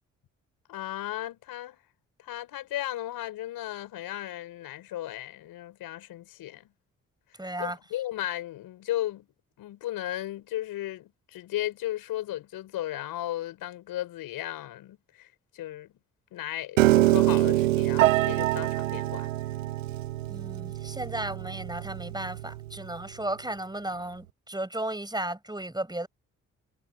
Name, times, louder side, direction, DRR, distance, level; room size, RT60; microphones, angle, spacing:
voice 1, 0.7-1.8 2.2-6.7 7.6-9.3 9.6-15.3 15.5-15.9 16.3-19.3, left 14 dB, 70° left, 5.1 m, -35 dB
voice 2, 7.4-7.8 20.3-26.1, right 1 dB, 10° right, 7.6 m, -34 dB
Piano, 16.8-23.0, right 17 dB, 85° right, 1.1 m, -25 dB
hypercardioid pair, 40°, 37 cm